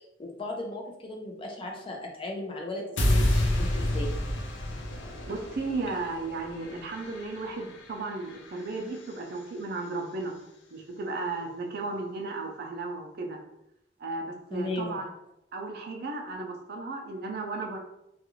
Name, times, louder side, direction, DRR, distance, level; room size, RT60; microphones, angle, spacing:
voice 1, 0.0-4.1 14.5-15.0, left 2 dB, 30° left, 1 dB, 0.5 m, -36 dB
sound 1, 3.0-9.1, left 1 dB, 85° left, 0.5 m, -30 dB
voice 2, 5.3-10.3 10.7-13.4 14.0-15.1 15.5-17.8, right 3 dB, 55° right, 2 dB, 0.5 m, -34 dB
2.4 x 2.4 x 3.0 m, 0.84 s
head